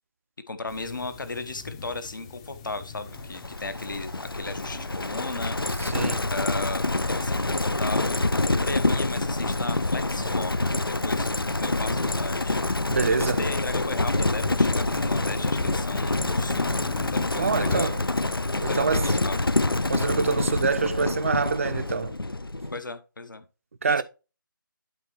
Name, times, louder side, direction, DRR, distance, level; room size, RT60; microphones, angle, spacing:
voice 1, 0.5-5.5 6.3-12.6 13.1-16.7 17.0-18.0 18.6-19.4 22.7-23.4 23.9-24.0, left 3 dB, 65° left, 1.0 m, -35 dB
sound 1, 0.7-17.8, left 5 dB, 15° left, 0.6 m, -41 dB
Livestock farm animals working animals, 3.1-22.8, left 2 dB, 85° left, 0.6 m, -26 dB
voice 2, 5.8-6.3 12.9-13.5 17.3-18.0 18.6-19.2 19.9-22.2 23.8-24.0, right 5 dB, 40° right, 0.6 m, -26 dB
12.0 x 4.4 x 3.1 m
figure-of-eight pair, 150°, 12 cm